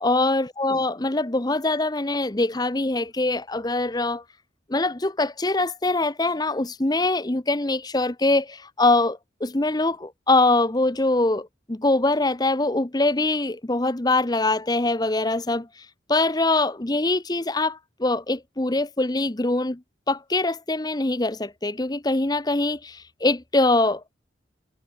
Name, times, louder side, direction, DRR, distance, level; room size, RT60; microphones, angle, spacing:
voice 1, 0.0-4.2 4.7-15.7 16.1-19.8 20.1-24.0, left 2 dB, 20° left, 0.9 m, -23 dB
head